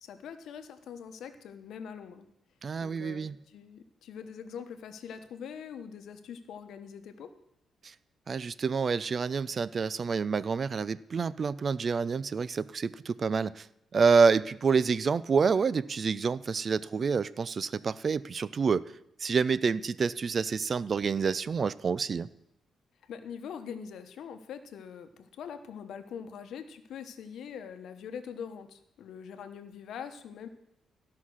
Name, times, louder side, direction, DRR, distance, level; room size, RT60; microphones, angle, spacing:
voice 1, 0.0-2.2 2.8-7.3 23.1-30.5, left 7 dB, 80° left, 9 dB, 0.9 m, -43 dB
voice 2, 2.6-3.4 7.8-7.9 8.3-13.7 13.9-18.8 19.2-22.3, right 5 dB, 40° right, 18 dB, 0.4 m, -28 dB
13.5 x 5.7 x 6.3 m, 0.78 s
cardioid pair, 115°, 0 cm